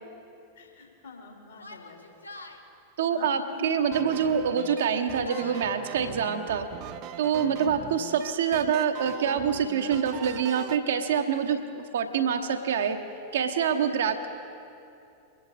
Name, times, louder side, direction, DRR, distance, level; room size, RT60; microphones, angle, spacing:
voice 1, 0.5-2.0 3.1-3.7 4.2-4.4 7.4-7.7, left 3 dB, 65° left, 0 dB, 2.8 m, -45 dB
Yell, 1.5-2.6 3.7-4.1 4.4-5.7, left 3 dB, 85° left, 1.1 m, -46 dB
voice 2, 3.0-6.7 7.2-13.0 13.3-14.3, right 7 dB, 60° right, 6 dB, 1.0 m, -26 dB
sound 1, 3.9-10.8, right 12 dB, 40° right, 0.4 m, -41 dB
23.0 x 10.5 x 4.2 m, 2.6 s
figure-of-eight pair, 90°, 0 cm